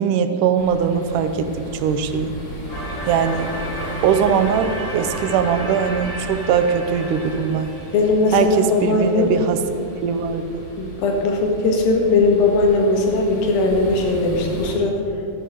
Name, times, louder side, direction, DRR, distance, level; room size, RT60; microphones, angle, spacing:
voice 1, 0.0-2.4 3.1-3.6 4.0-7.7 8.3-9.6 10.0-10.6, right 7 dB, 75° right, 9 dB, 2.2 m, -21 dB
sound 1, 0.6-14.7, equal, 35° left, 4.4 m, -36 dB
sound 2, 2.7-9.6, equal, 20° left, 1.7 m, -33 dB
voice 2, 7.9-9.3 10.8-15.0, left 3 dB, 80° left, 1 dB, 3.6 m, -19 dB
14.0 x 10.0 x 6.6 m, 2.6 s
omnidirectional pair, 4.0 m